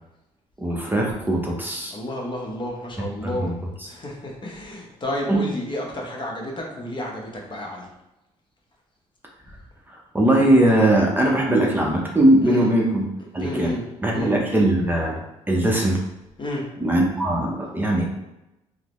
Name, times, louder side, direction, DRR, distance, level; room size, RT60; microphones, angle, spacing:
voice 1, 0.6-2.0 3.2-3.5 5.3-5.4 9.9-13.1 13.3-13.7 14.0-16.0 16.8-18.1, right 1 dB, 15° right, -2 dB, 0.7 m, -20 dB
voice 2, 1.9-3.5 3.9-7.9 12.4-12.7 13.4-13.9 14.1-14.3 16.4-16.6, left 1 dB, 35° left, -1 dB, 0.9 m, -31 dB
3.7 x 2.1 x 3.0 m, 0.93 s
cardioid pair, 80°, 13 cm